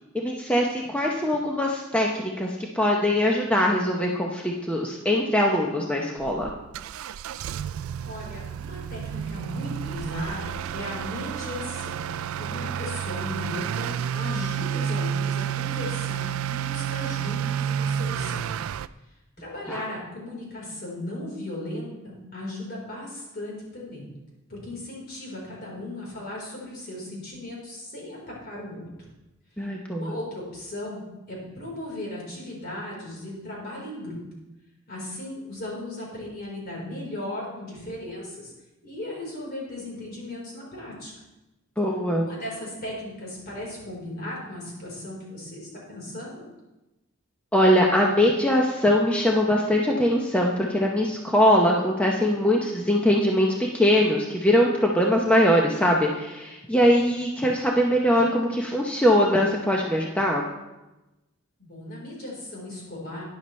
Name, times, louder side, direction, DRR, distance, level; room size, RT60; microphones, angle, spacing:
voice 1, 0.1-6.5 19.7-19.8 29.6-30.1 41.8-42.3 47.5-60.4, equal, 5° left, -1 dB, 0.8 m, -22 dB
Motor vehicle (road) / Accelerating revving vroom, 6.2-18.9, right 8 dB, 85° right, 0.3 m, -30 dB
voice 2, 8.0-12.0 12.4-18.5 19.4-24.1 24.5-28.9 30.0-31.0 31.3-34.2 34.9-38.5 38.8-41.1 42.2-46.5 61.6-63.2, left 1 dB, 50° left, -3 dB, 4.1 m, -36 dB
12.0 x 10.5 x 3.2 m, 1.0 s
head